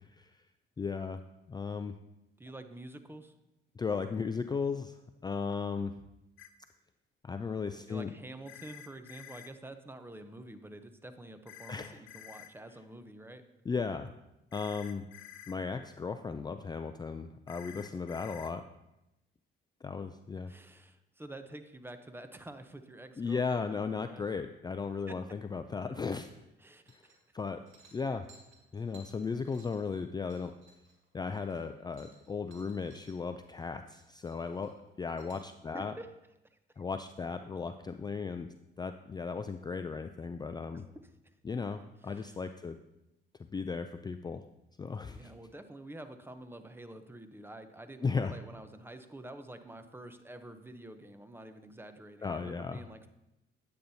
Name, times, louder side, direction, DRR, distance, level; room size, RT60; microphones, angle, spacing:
voice 1, 0.8-1.2 1.5-1.9 3.8-5.0 5.2-5.9 7.2-8.1 11.7-12.0 13.7-14.1 14.5-15.1 15.5-18.6 19.8-20.5 23.2-26.4 26.9-27.0 27.3-27.6 27.9-28.3 28.7-30.5 31.1-35.9 36.8-38.5 38.8-40.9 41.4-42.8 43.5-44.5 44.8-45.3 48.0-48.3 52.2-52.8, left 5 dB, 20° left, 8 dB, 0.3 m, -36 dB
voice 2, 2.4-3.3 7.9-13.4 20.5-24.4 25.1-25.2 26.6-27.4 35.7-36.1 36.5-36.6 40.7-40.9 41.2-41.3 42.0-42.4 45.1-53.1, right 1 dB, 10° right, 9 dB, 0.6 m, -48 dB
sound 1, 6.4-6.5 8.5-9.5 11.5-12.5 14.5-15.5 17.5-18.5, left 10 dB, 80° left, 0.6 m, -50 dB
sound 2, 26.9-27.4 27.7-33.1 33.5-34.0 34.3-35.5, right 3 dB, 75° right, 2.0 m, -61 dB
9.1 x 8.5 x 2.7 m, 0.89 s
cardioid pair, 90°, 20 cm